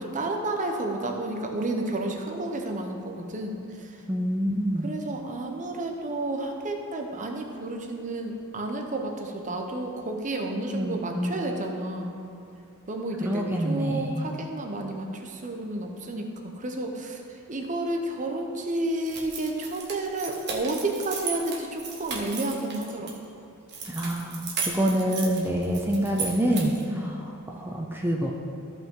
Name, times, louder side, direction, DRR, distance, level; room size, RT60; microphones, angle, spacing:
voice 1, 0.0-4.0 4.8-12.2 12.9-23.2 26.9-27.1, right 2 dB, 35° right, 2 dB, 0.9 m, -31 dB
voice 2, 4.1-4.9 10.7-11.4 13.2-14.2 23.9-27.1 27.5-28.3, equal, 10° right, 0 dB, 0.6 m, -26 dB
sound 1, 19.1-23.1 23.7-26.9, right 5 dB, 50° right, 1.4 m, -35 dB
14.5 x 5.5 x 3.8 m, 2.6 s
head